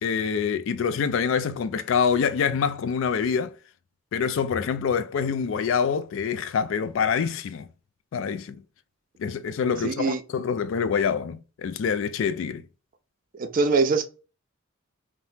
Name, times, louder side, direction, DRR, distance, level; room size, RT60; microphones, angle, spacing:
voice 1, 0.0-3.5 4.1-7.7 8.1-8.6 9.2-12.6, left 6 dB, 65° left, 0.3 m, -26 dB
voice 2, 9.8-10.2 13.3-14.1, right 4 dB, 40° right, 0.4 m, -23 dB
2.7 x 2.1 x 3.2 m
head